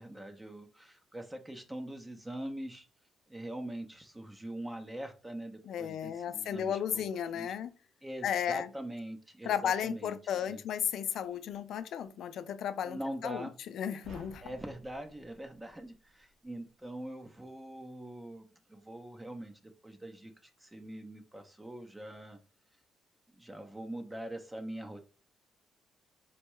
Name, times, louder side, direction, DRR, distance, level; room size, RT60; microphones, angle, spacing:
voice 1, 0.0-2.9 3.3-7.5 8.0-10.2 10.4-10.6 12.8-13.5 14.4-22.4 23.4-25.1, right 1 dB, 15° right, 0.6 m, -43 dB
voice 2, 5.7-7.7 8.2-8.7 9.4-13.5 13.7-14.4, left 9 dB, 70° left, 0.3 m, -34 dB
sound 1, 14.0-16.4, equal, 75° right, 0.9 m, -55 dB
4.4 x 2.2 x 3.0 m
cardioid pair, 90°, 0 cm